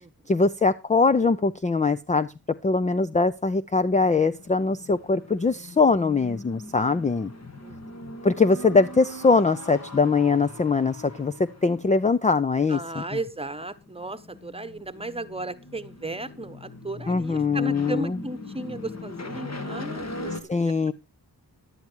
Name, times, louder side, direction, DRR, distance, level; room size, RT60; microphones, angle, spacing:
voice 1, 0.3-2.3 2.6-7.3 8.2-11.3 11.6-13.0 17.1-18.2 20.5-20.9, left 4 dB, 20° left, 11 dB, 0.5 m, -22 dB
sound 1, 4.0-20.4, left 2 dB, 40° left, 1.7 m, -41 dB
voice 2, 7.6-8.0 12.7-20.7, right 2 dB, 15° right, 12 dB, 1.1 m, -35 dB
10.5 x 9.6 x 4.5 m, 0.28 s
cardioid pair, 70°, 39 cm